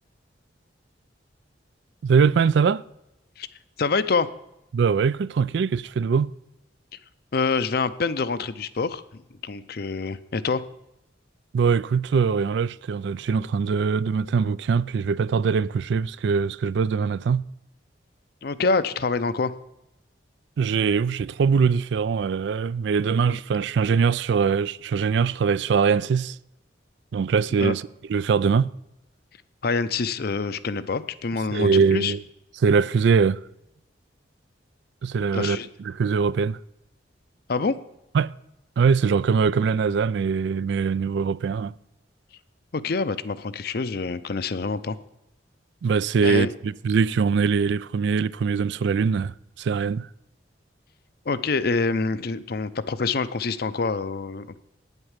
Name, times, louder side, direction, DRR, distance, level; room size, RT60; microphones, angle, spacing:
voice 1, 2.0-2.8 4.7-6.3 11.5-17.4 20.6-26.4 27.1-27.8 28.1-28.7 31.5-32.2 32.6-33.4 35.0-36.6 38.1-38.3 38.8-41.7 45.8-50.1, right 5 dB, 65° right, 0.3 m, -22 dB
voice 2, 3.8-4.3 7.3-9.0 9.4-10.6 18.4-19.5 27.6-27.7 29.6-32.1 35.3-35.7 37.5-37.8 42.7-45.0 46.2-46.5 51.3-54.6, left 4 dB, 55° left, 0.5 m, -26 dB
9.2 x 8.0 x 7.2 m
head